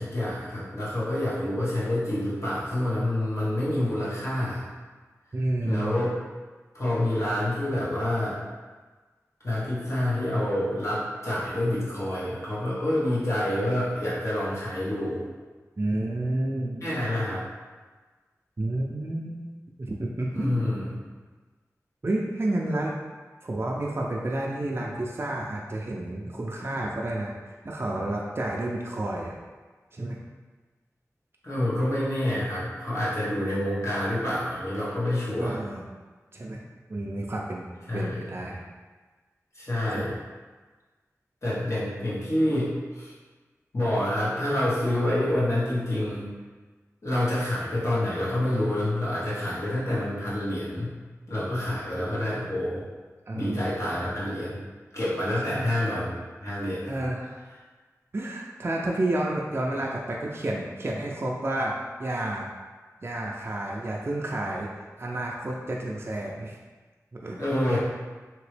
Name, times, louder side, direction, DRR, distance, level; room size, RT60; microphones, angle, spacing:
voice 1, 0.0-4.6 5.6-6.1 6.7-8.4 9.4-15.3 16.8-17.4 20.3-21.0 31.4-35.6 37.9-38.2 39.5-40.2 41.4-43.1 43.7-46.3 47.0-50.9 51.3-52.8 53.3-54.6 54.9-57.0 67.4-67.8, left 1 dB, 55° left, -9 dB, 1.3 m, -27 dB
voice 2, 5.3-6.0 15.8-16.9 18.6-19.5 19.8-20.7 22.0-23.0 23.4-29.4 29.9-30.2 35.4-35.8 36.3-36.6 36.9-38.6 39.9-40.0 53.3-53.6 55.5-55.7 56.9-57.5 58.1-62.5 63.0-64.7 65.0-66.6 67.1-67.4 67.7-67.8, right 1 dB, 40° right, -2 dB, 0.4 m, -30 dB
2.9 x 2.9 x 3.2 m, 1.3 s
wide cardioid pair, 55°, 6 cm